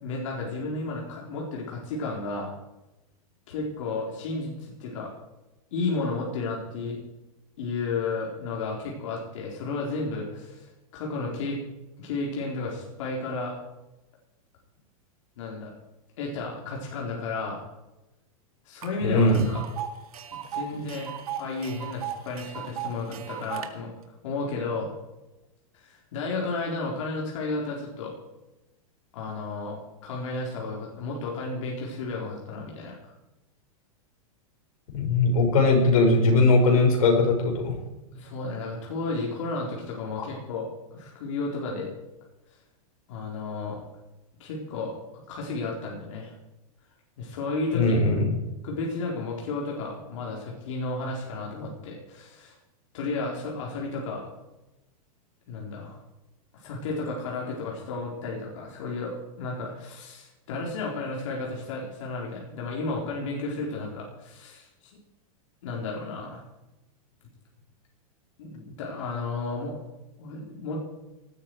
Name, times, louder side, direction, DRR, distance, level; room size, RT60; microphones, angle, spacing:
voice 1, 0.0-2.5 3.5-5.1 5.7-7.0 7.6-11.6 12.0-13.5 15.4-15.7 16.2-17.6 18.6-19.6 20.5-21.1 21.4-23.9 24.2-24.9 25.7-28.1 29.1-32.9 38.1-41.9 43.1-43.8 44.4-46.3 47.2-48.0 48.6-52.6 52.9-54.2 55.5-56.0 56.5-64.9 65.6-66.4 68.4-69.8 70.2-70.8, left 3 dB, 60° left, -2 dB, 4.3 m, -33 dB
Tick, 18.8-18.9 19.2-23.7, right 9 dB, 80° right, 2.1 m, -36 dB
voice 2, 19.0-19.4 34.9-37.7 47.7-48.4, left 2 dB, 75° left, 1 dB, 6.2 m, -20 dB
19.0 x 13.5 x 4.8 m, 1.0 s
supercardioid pair, 165°, 18 cm